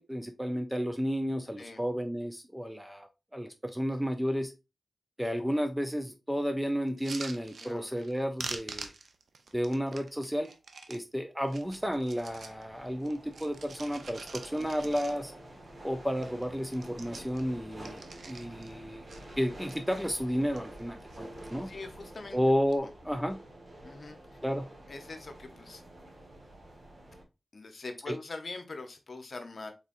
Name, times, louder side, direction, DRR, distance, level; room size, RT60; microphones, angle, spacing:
voice 1, 0.0-4.5 5.2-8.9 9.5-10.5 10.9-15.3 15.8-19.1 19.4-21.7 22.3-23.4 24.4-24.7 28.1-28.2, equal, 5° right, 6 dB, 0.4 m, -32 dB
sound 1, 6.9-8.1 8.4-11.0 11.4-12.6 13.0-15.5 15.8-15.9 16.1-16.4 16.7-18.7 19.1-19.8 20.3-20.8 21.1-21.7 22.5-22.8, right 4 dB, 85° right, 0.5 m, -45 dB
sound 2, 11.6-27.2, right 1 dB, 55° right, 1.3 m, -49 dB
voice 2, 21.6-22.4 22.8-22.9 23.8-24.4 24.9-25.8 27.5-29.7, left 3 dB, 60° left, 6 dB, 0.8 m, -43 dB
3.9 x 3.6 x 2.5 m, 0.27 s
wide cardioid pair, 80°, 0 cm